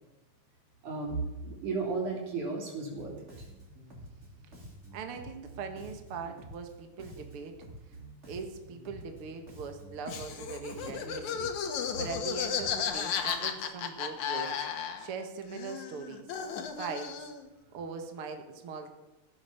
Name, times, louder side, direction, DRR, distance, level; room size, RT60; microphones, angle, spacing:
voice 1, 0.8-3.1, right 4 dB, 85° right, -1 dB, 5.0 m, -34 dB
Bass guitar, 3.0-12.9, right 2 dB, 25° right, 3.2 m, -49 dB
voice 2, 4.9-7.6 8.3-11.5 12.0-16.3 16.8-17.1 17.7-18.9, right 5 dB, 55° right, 5 dB, 2.1 m, -41 dB
Laughter, 10.1-15.2 15.5-17.5, left 7 dB, 80° left, 2.7 m, -34 dB
16.0 x 9.7 x 6.9 m, 1.0 s
omnidirectional pair, 3.4 m